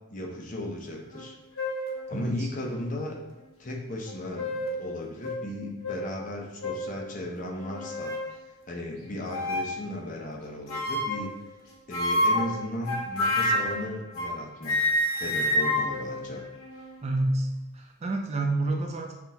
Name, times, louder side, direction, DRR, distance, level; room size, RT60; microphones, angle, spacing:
voice 1, 0.1-1.3 2.1-3.2 3.6-8.1 8.7-11.3 11.9-16.4, left 1 dB, 40° left, 0 dB, 0.7 m, -35 dB
sound 1, 1.1-1.3 1.6-2.0 2.7-2.8 4.1-4.8 5.2-5.4 5.8-6.0 6.6-6.9 7.6-8.3 9.3-9.8 10.7-11.3 11.9-14.4 14.6-17.0, left 1 dB, 80° left, 0.8 m, -28 dB
voice 2, 2.1-2.5 17.0-17.5 17.7-19.1, right 2 dB, 30° right, 2 dB, 0.4 m, -28 dB
5.8 x 2.4 x 2.7 m, 1.0 s
head